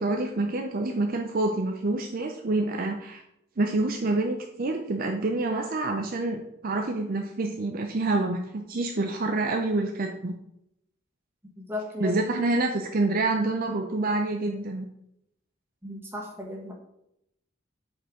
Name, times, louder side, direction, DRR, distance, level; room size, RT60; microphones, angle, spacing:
voice 1, 0.0-3.2 3.6-10.3 12.0-14.8, right 2 dB, 45° right, 3 dB, 0.6 m, -27 dB
voice 2, 11.7-12.1 15.8-16.7, left 2 dB, 10° right, -2 dB, 1.5 m, -35 dB
8.0 x 4.5 x 3.8 m, 0.79 s
head